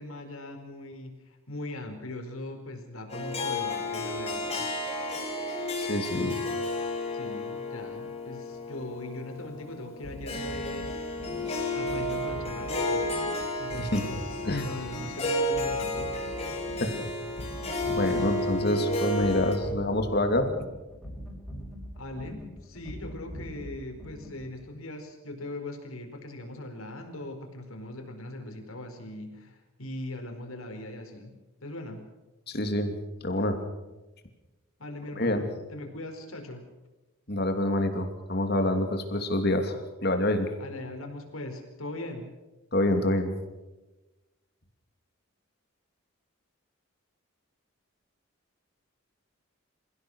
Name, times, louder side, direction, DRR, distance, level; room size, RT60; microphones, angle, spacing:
voice 1, 0.0-4.7 7.1-10.9 11.7-13.1 13.6-16.6 21.9-31.3 31.6-32.0 34.8-36.6 40.6-42.3, left 1 dB, 85° left, 4 dB, 4.6 m, -40 dB
Harp, 3.1-19.5, left 1 dB, 30° left, 4.7 m, -32 dB
voice 2, 5.8-6.4 13.8-14.0 14.5-14.7 16.8-16.9 17.1-17.3 17.9-20.5 32.5-32.9 33.2-33.5 35.2-35.4 37.3-40.5 42.7-43.3, left 1 dB, 50° left, 6 dB, 2.9 m, -27 dB
sound 1, 10.0-24.7, equal, ahead, 6.5 m, -43 dB
28.0 x 16.5 x 6.4 m, 1.1 s
head